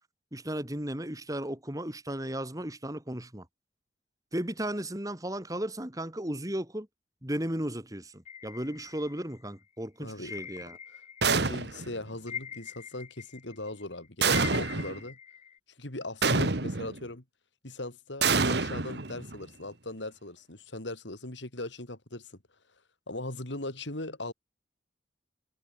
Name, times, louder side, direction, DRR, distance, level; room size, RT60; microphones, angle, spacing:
voice 1, 0.3-3.5 4.3-6.9 7.2-10.8, right 1 dB, 20° right, 3.0 m, -35 dB
sound 1, 8.3-9.6 10.3-11.6 11.8-15.6, left 8 dB, 35° left, 5.0 m, -43 dB
voice 2, 10.0-10.3 10.9-11.0 11.3-15.2 15.8-17.2 17.6-22.3 23.1-24.3, left 2 dB, 75° left, 4.0 m, -39 dB
sound 2, 11.2-12.0 14.2-15.0 16.2-17.0 18.2-19.4, right 4 dB, 60° right, 1.5 m, -27 dB
head